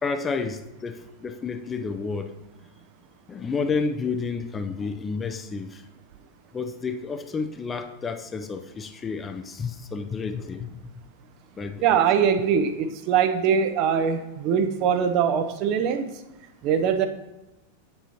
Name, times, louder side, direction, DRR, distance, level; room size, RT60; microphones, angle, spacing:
voice 1, 0.0-2.3 3.3-5.8 6.5-10.8 11.6-12.0, left 4 dB, 20° left, 0.4 m, -30 dB
voice 2, 11.8-16.1 16.6-17.1, right 7 dB, 40° right, 0.5 m, -22 dB
7.7 x 7.5 x 2.8 m
figure-of-eight pair, 90°, 0 cm